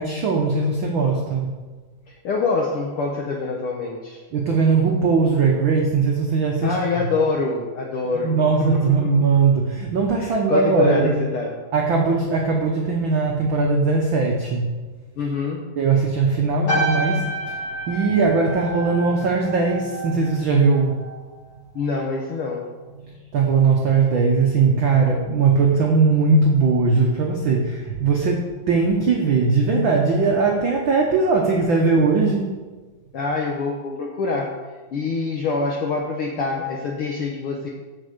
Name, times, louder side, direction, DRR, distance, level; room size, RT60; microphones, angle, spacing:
voice 1, 0.0-1.5 4.3-6.7 8.2-11.1 11.7-14.7 15.8-17.3 17.9-21.0 23.0-32.5, right 4 dB, 80° right, 0 dB, 1.1 m, -19 dB
voice 2, 2.1-4.2 6.6-8.4 8.7-8.9 10.1-11.5 15.2-15.6 21.7-22.6 33.1-34.5 34.9-37.7, left 4 dB, 75° left, 0 dB, 1.2 m, -25 dB
sound 1, 16.7-21.3 21.6-22.0, right 2 dB, 35° left, 2.3 m, -29 dB
8.0 x 5.9 x 6.6 m, 1.3 s
omnidirectional pair, 3.6 m